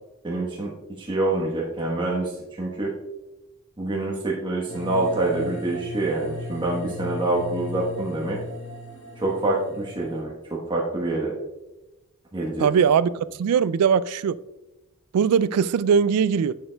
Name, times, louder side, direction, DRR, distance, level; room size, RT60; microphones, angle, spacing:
voice 1, 0.2-0.7 1.0-3.0 3.8-8.4 9.2-11.4 12.3-12.8, right 2 dB, 20° right, -4 dB, 1.1 m, -26 dB
sound 1, 4.7-10.2, left 2 dB, 25° left, 1.5 m, -37 dB
voice 2, 12.6-14.4 15.1-16.5, right 7 dB, 75° right, 17 dB, 0.3 m, -20 dB
11.0 x 6.6 x 2.2 m, 1.0 s
head